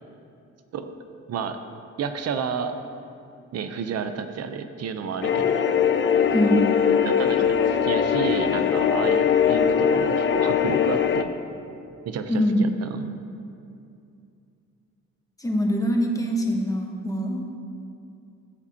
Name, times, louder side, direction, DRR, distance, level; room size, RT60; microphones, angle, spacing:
voice 1, 2.0-2.7 3.5-5.6 6.4-6.6 7.0-11.3 12.1-13.1, right 6 dB, 55° right, 8 dB, 0.7 m, -31 dB
sound 1, 5.2-11.2, left 7 dB, 40° left, 0.4 m, -21 dB
voice 2, 6.3-6.7 12.3-12.7 15.4-17.4, equal, 10° left, 0 dB, 1.2 m, -23 dB
13.5 x 7.1 x 2.8 m, 2.5 s
cardioid pair, 90°, 30 cm